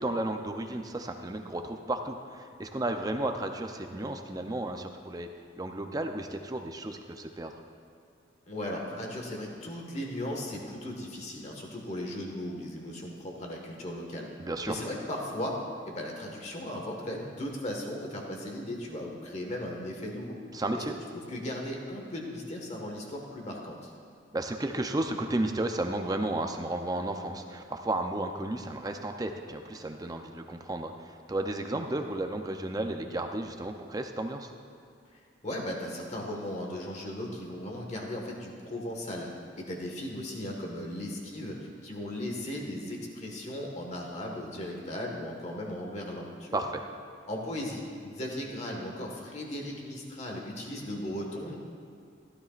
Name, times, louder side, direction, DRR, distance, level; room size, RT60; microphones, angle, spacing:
voice 1, 0.0-5.3 5.6-7.5 14.4-14.8 20.5-21.0 24.3-34.5 46.5-46.8, right 1 dB, 20° right, 5 dB, 0.6 m, -33 dB
voice 2, 8.5-14.3 14.7-15.5 15.8-20.4 20.7-20.8 21.1-23.9 35.1-39.3 39.5-46.6 47.3-51.6, left 1 dB, 35° left, 0 dB, 1.5 m, -37 dB
15.5 x 12.0 x 2.5 m, 2.5 s
head